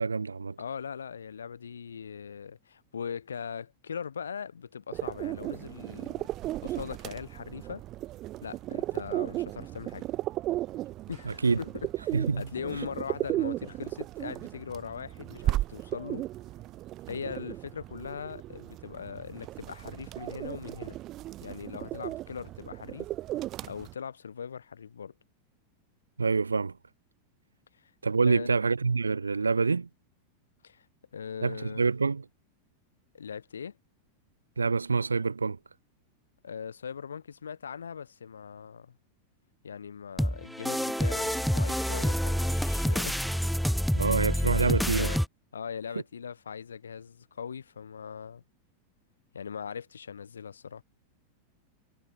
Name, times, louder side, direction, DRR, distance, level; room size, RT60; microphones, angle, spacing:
voice 1, 0.0-0.6 11.3-11.6 12.1-12.4 26.2-26.8 28.0-29.9 31.4-32.2 34.6-35.6 43.9-45.1, right 4 dB, 75° right, 0.5 m, -26 dB
voice 2, 0.6-6.3 6.6-7.8 8.4-10.1 11.1-11.7 12.0-16.3 17.1-21.0 21.4-23.1 23.6-25.1 27.8-27.9 28.2-28.5 30.6-30.9 31.1-31.9 33.1-33.8 36.4-38.9 39.6-43.3 44.5-45.2 45.5-48.4 49.3-50.8, left 7 dB, 70° left, 1.7 m, -40 dB
sound 1, 4.9-23.9, right 15 dB, 35° right, 1.2 m, -36 dB
sound 2, 40.2-45.2, equal, ahead, 0.6 m, -27 dB
figure-of-eight pair, 90°, 0 cm